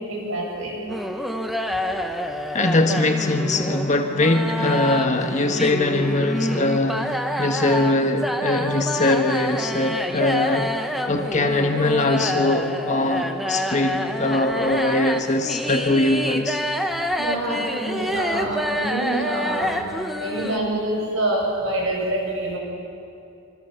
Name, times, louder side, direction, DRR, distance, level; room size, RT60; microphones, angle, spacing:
voice 1, 0.1-0.9 17.2-22.6, right 1 dB, 60° right, 7.9 m, -26 dB
sound 1, 0.9-20.6, equal, ahead, 1.1 m, -28 dB
voice 2, 2.5-10.8 11.1-16.6, left 2 dB, 30° left, 1.4 m, -21 dB
26.5 x 24.5 x 7.2 m
head